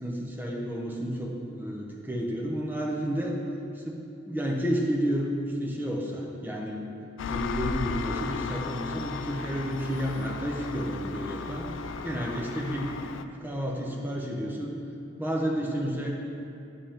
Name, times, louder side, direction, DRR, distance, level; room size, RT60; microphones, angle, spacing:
voice 1, 0.0-3.4 3.7-6.8 7.3-11.7 12.0-14.7 15.2-16.1, equal, 10° right, -2 dB, 0.7 m, -31 dB
Engine, 7.2-13.2, left 5 dB, 80° left, 0.3 m, -35 dB
9.8 x 5.2 x 2.9 m, 2.7 s
head